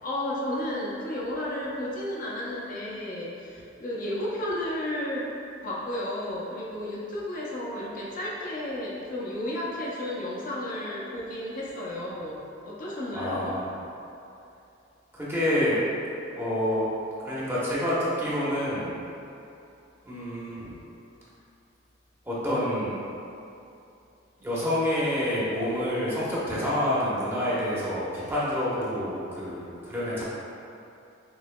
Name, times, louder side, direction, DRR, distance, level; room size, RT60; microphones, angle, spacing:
voice 1, 0.0-5.3 5.6-13.5, left 1 dB, 45° left, -6 dB, 0.6 m, -33 dB
voice 2, 13.1-13.7 15.2-15.8 16.3-16.8 17.2-18.9 20.0-20.6 22.3-23.0 24.4-30.2, left 1 dB, 10° right, -9 dB, 0.9 m, -28 dB
6.2 x 3.1 x 2.2 m, 2.7 s
head